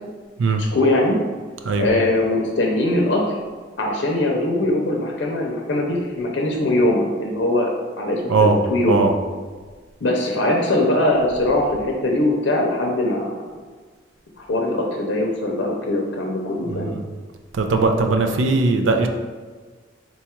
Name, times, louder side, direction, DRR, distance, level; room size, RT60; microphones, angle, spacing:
voice 1, 0.6-1.2 1.8-3.4 3.8-7.7 8.0-9.0 10.0-13.3 14.4-17.0, left 1 dB, 80° left, 0 dB, 0.6 m, -21 dB
voice 2, 16.7-17.0 17.5-19.1, right 3 dB, 90° right, 5 dB, 0.4 m, -19 dB
4.0 x 2.4 x 4.3 m, 1.4 s
head